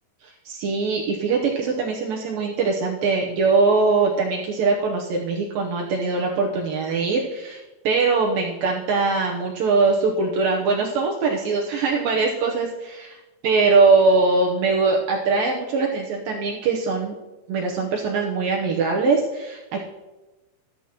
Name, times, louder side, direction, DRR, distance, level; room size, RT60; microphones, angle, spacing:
voice 1, 0.2-13.1 13.4-17.1 17.5-19.8, right 4 dB, 85° right, -1 dB, 2.0 m, -22 dB
14.5 x 12.0 x 3.0 m, 1.1 s
omnidirectional pair, 5.4 m